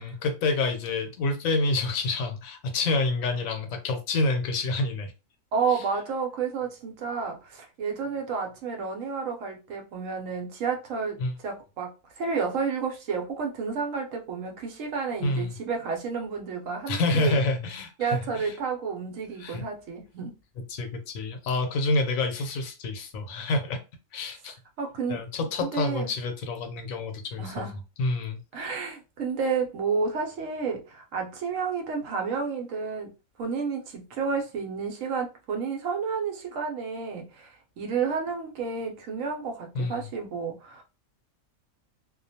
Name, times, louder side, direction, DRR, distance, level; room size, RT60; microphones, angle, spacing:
voice 1, 0.0-5.1 5.7-5.8 11.2-11.3 15.2-15.6 16.9-18.5 19.4-19.6 20.7-23.8 24.1-24.6 25.1-27.7 28.0-28.4 39.7-40.1, left 2 dB, 80° left, 1.0 m, -28 dB
voice 2, 5.5-11.2 11.4-17.4 18.0-20.4 24.8-25.2 25.6-26.1 27.4-27.8 28.5-33.1 33.4-40.8, right 5 dB, 75° right, 1.0 m, -31 dB
2.4 x 2.2 x 2.7 m
omnidirectional pair, 1.4 m